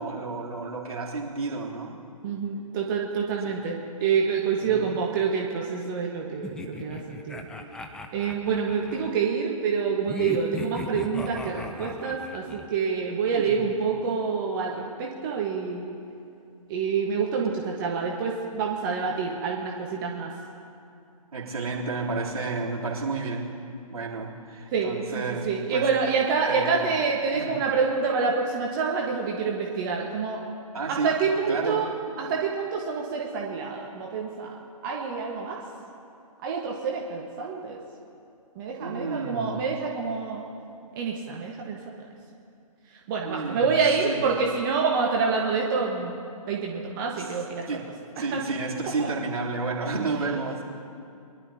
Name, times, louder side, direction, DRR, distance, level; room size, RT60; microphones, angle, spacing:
voice 1, 0.0-2.0 3.4-3.5 4.6-4.9 13.3-13.6 21.3-23.6 23.9-25.9 26.4-26.9 27.3-27.6 30.7-31.8 38.8-39.7 43.2-44.3 47.2-47.4 47.7-50.6, right 3 dB, 70° right, -4 dB, 3.4 m, -31 dB
voice 2, 2.2-3.7 4.0-7.4 8.1-15.8 16.7-20.3 24.7-25.0 25.4-30.4 30.9-31.9 32.2-34.5 34.8-35.6 36.4-37.8 38.5-40.4 40.9-42.0 42.9-46.1 46.5-47.7 48.3-48.4 49.0-49.1, right 5 dB, 35° right, -1 dB, 1.5 m, -27 dB
sound 1, 6.4-9.1 10.1-12.7, left 2 dB, 5° left, 0.5 m, -38 dB
23.5 x 12.0 x 2.9 m, 2.6 s
figure-of-eight pair, 135°, 19 cm